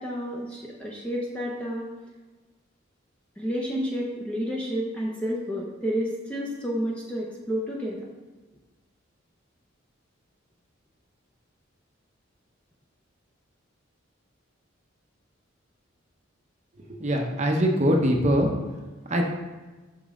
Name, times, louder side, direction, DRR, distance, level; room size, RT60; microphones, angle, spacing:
voice 1, 0.0-1.9 3.4-8.1, equal, 5° left, -3 dB, 0.6 m, -30 dB
voice 2, 16.9-18.5 19.1-19.3, equal, 35° right, 1 dB, 0.7 m, -22 dB
6.2 x 5.1 x 3.7 m, 1.2 s
head